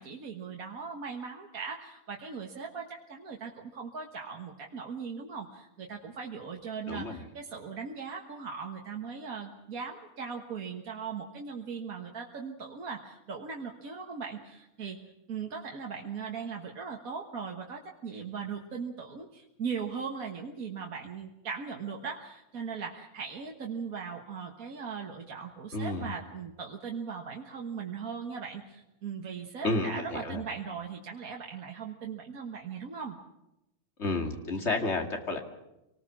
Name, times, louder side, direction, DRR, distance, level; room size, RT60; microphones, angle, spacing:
voice 1, 0.0-15.0 15.3-33.2, right 6 dB, 70° right, 0 dB, 1.9 m, -39 dB
voice 2, 6.9-7.2 25.7-26.1 29.6-30.4 34.0-35.4, left 2 dB, 50° left, 3 dB, 2.6 m, -31 dB
26.0 x 19.5 x 6.1 m, 0.91 s
omnidirectional pair, 1.5 m